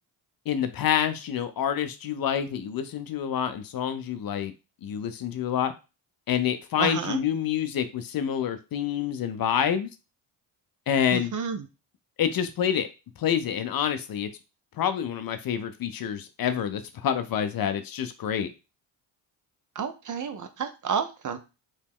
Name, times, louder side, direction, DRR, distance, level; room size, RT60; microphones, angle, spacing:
voice 1, 0.5-4.5 4.8-5.7 6.3-9.9 10.9-11.3 12.2-12.9 13.2-14.3 14.8-18.5, left 9 dB, 45° left, 10 dB, 0.5 m, -27 dB
voice 2, 6.8-7.2 11.1-11.6 19.8-21.4, right 7 dB, 40° right, 9 dB, 0.5 m, -30 dB
2.9 x 2.1 x 3.5 m, 0.29 s
supercardioid pair, 60°, 50 cm